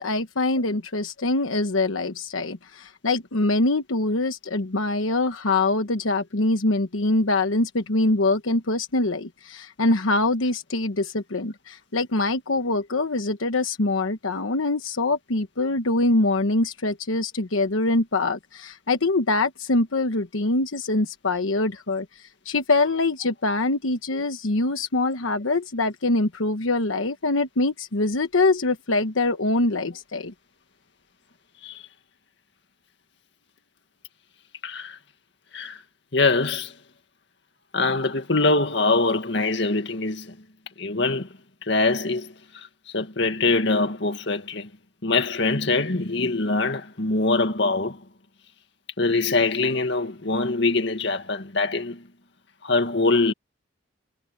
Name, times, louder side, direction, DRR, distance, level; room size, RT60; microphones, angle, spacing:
voice 1, 0.0-30.3, left 2 dB, 90° left, 1.2 m, -24 dB
voice 2, 34.6-35.0 35.5-35.8 36.1-36.7 37.7-40.4 40.8-41.3 41.6-42.7 42.9-44.7 45.0-48.0 49.0-52.0 52.6-53.3, left 3 dB, 60° left, 2.1 m, -23 dB
head